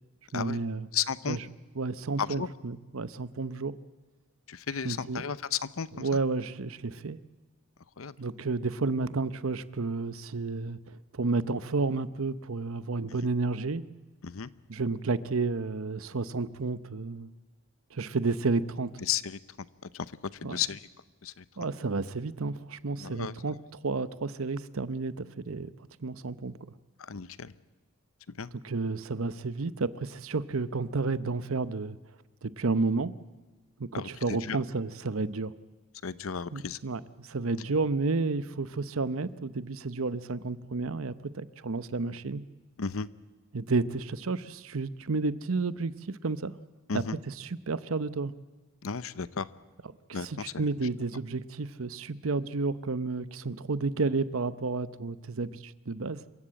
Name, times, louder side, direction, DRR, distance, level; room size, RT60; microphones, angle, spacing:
voice 1, 0.3-0.9 1.3-1.4 1.8-3.8 4.8-5.3 5.9-7.2 8.2-13.8 14.7-17.3 17.9-18.9 20.4-20.6 21.6-25.7 26.0-26.5 28.5-32.0 32.4-33.1 33.8-35.5 36.5-42.4 43.5-46.5 46.9-48.3 50.1-56.2, right 3 dB, 80° right, 15 dB, 0.8 m, -31 dB
voice 2, 0.9-1.4 2.2-2.5 4.5-6.1 8.0-8.2 14.2-14.5 19.1-19.4 19.8-20.1 20.4-20.8 21.2-21.4 23.0-23.3 27.0-27.5 28.4-28.5 33.9-34.6 36.0-36.8 42.8-43.1 46.9-47.2 48.8-49.5 50.1-50.4, left 7 dB, 85° left, 16 dB, 0.8 m, -33 dB
27.0 x 15.5 x 8.6 m, 1.2 s
head